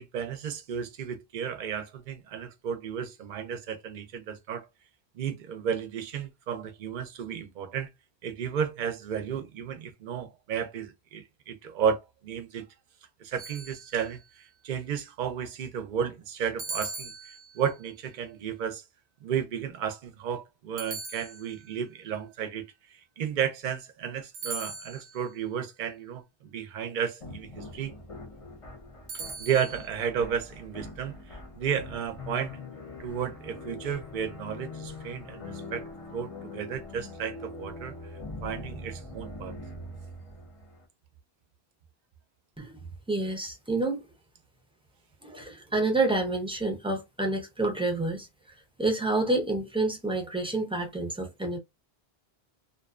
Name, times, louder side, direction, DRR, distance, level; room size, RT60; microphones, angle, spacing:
voice 1, 0.0-4.7 5.1-7.9 8.2-12.6 13.2-17.1 17.5-18.8 19.2-22.7 22.9-27.9 29.4-32.6 33.0-37.9 38.4-39.6, right 8 dB, 55° right, 0.6 m, -33 dB
sound 1, 13.4-14.3 16.6-17.8 20.8-21.8 24.3-25.3 29.1-29.9, right 4 dB, 85° right, 0.9 m, -40 dB
sound 2, 27.2-40.9, left 2 dB, 35° left, 0.7 m, -43 dB
voice 2, 43.1-44.0 45.2-48.3 48.8-51.6, right 2 dB, 5° right, 0.4 m, -28 dB
2.6 x 2.2 x 2.4 m
omnidirectional pair, 1.1 m